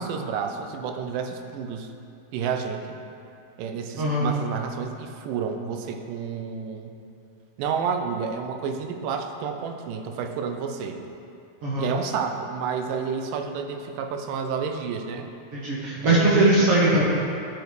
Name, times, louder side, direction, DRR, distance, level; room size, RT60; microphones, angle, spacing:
voice 1, 0.0-1.9 2.3-3.0 3.6-6.9 7.6-11.0 11.8-15.3 16.0-16.5, right 6 dB, 90° right, 5 dB, 2.3 m, -30 dB
voice 2, 4.0-4.3 11.6-11.9 15.5-17.0, right 2 dB, 65° right, -7 dB, 1.6 m, -20 dB
12.0 x 5.1 x 3.1 m, 2.6 s
omnidirectional pair, 3.8 m